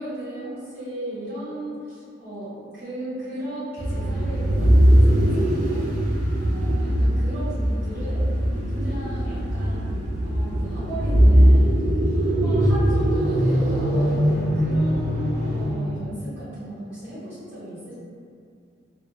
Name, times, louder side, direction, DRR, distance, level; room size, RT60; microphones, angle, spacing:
voice 1, 0.0-8.3 8.7-11.8 12.2-17.9, right 1 dB, 10° right, -18 dB, 1.4 m, -35 dB
sound 1, 3.8-16.0, equal, 40° right, 0.4 m, -20 dB
2.5 x 2.2 x 2.3 m, 2.3 s
head